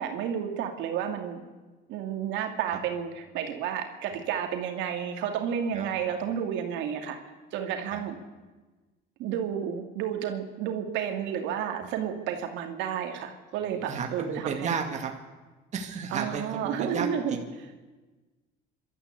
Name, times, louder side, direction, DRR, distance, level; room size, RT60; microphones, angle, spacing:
voice 1, 0.0-1.5 1.9-7.2 7.5-8.2 9.2-14.7 16.1-17.4, right 8 dB, 75° right, 4 dB, 2.7 m, -31 dB
voice 2, 13.6-15.1 15.7-17.4, right 6 dB, 40° right, 3 dB, 2.1 m, -33 dB
27.0 x 13.0 x 8.3 m, 1.3 s
cardioid pair, 130°, 19 cm